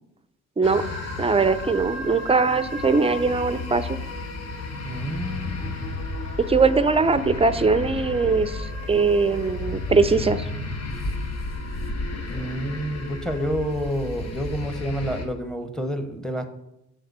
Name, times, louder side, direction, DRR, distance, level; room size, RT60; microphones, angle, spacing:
sound 1, 0.6-15.3, left 2 dB, 55° left, 1.3 m, -33 dB
voice 1, 1.2-4.0 6.4-10.5, right 4 dB, 20° right, 13 dB, 0.5 m, -21 dB
voice 2, 4.8-5.7 12.3-16.5, equal, ahead, 8 dB, 0.9 m, -29 dB
sound 2, 5.4-15.0, left 1 dB, 30° left, 1.0 m, -39 dB
7.8 x 3.8 x 6.7 m, 0.89 s
cardioid pair, 90°, 30 cm